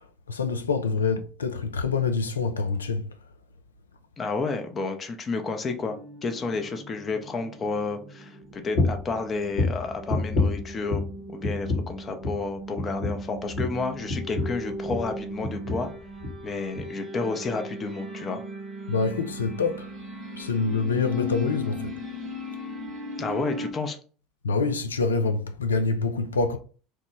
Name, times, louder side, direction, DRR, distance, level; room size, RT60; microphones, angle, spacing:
voice 1, 0.3-3.1 18.9-19.9 20.4-22.0 24.4-26.6, left 4 dB, 85° left, 0.3 m, -26 dB
voice 2, 4.2-11.0 11.3-15.9 16.4-18.4 23.2-24.0, left 4 dB, 30° left, 0.6 m, -31 dB
sound 1, 5.8-23.7, equal, 35° right, 0.7 m, -38 dB
sound 2, 8.7-9.1 9.5-11.2 11.4-12.0 12.2-12.5 12.8-15.1 15.4-15.9 16.2-16.4 16.8-16.9, left 3 dB, 60° left, 1.2 m, -28 dB
2.9 x 2.1 x 3.2 m
hypercardioid pair, 75°, 0 cm